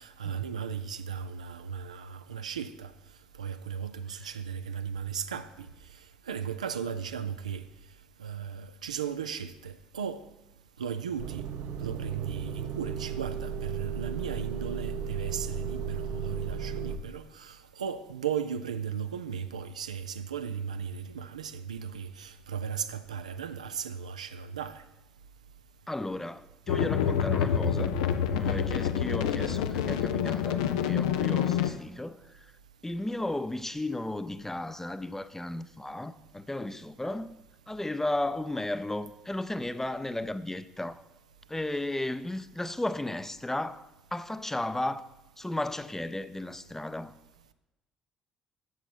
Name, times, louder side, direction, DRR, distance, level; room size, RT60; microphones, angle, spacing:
voice 1, 0.0-2.9 3.4-5.7 6.3-7.6 8.2-10.2 10.8-11.4 11.8-24.8, right 7 dB, 90° right, 0.3 m, -36 dB
Motor vehicle (road) / Engine starting / Idling, 11.2-17.0, right 6 dB, 60° right, 0.7 m, -35 dB
voice 2, 25.9-27.9 28.3-32.5 32.8-37.4 37.7-41.0 41.5-45.1 45.4-47.1, left 1 dB, 10° left, 0.5 m, -34 dB
sound 1, 26.7-31.7, left 8 dB, 80° left, 0.5 m, -27 dB
9.1 x 7.0 x 4.5 m
hypercardioid pair, 50°, 4 cm